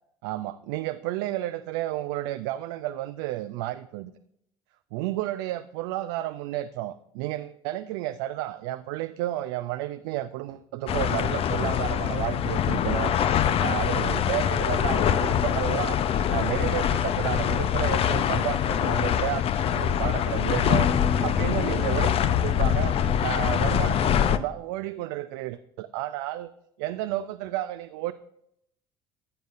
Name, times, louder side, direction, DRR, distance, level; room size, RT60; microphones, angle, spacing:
voice 1, 0.2-4.1 4.9-13.1 13.6-16.0 16.3-22.9 23.2-26.5 26.8-28.1, right 15 dB, 75° right, 11 dB, 0.4 m, -32 dB
sound 1, 10.9-24.4, left 9 dB, 50° left, 0.6 m, -24 dB
14.5 x 7.7 x 2.5 m, 0.75 s
hypercardioid pair, 65°, 13 cm